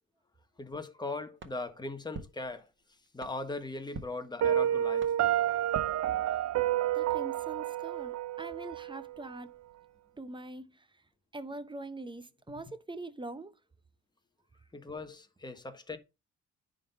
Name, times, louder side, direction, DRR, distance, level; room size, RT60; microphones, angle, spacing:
voice 1, 0.6-2.7 3.1-5.1 14.7-16.0, left 2 dB, 15° left, 1.3 m, -39 dB
sound 1, 1.4-6.7, right 5 dB, 40° right, 1.6 m, -49 dB
Piano, 4.4-9.4, right 11 dB, 60° right, 0.7 m, -30 dB
voice 2, 6.9-9.5 10.2-10.9 11.3-13.5, right 2 dB, 15° right, 0.8 m, -43 dB
9.8 x 4.0 x 5.4 m
cardioid pair, 90°, 30 cm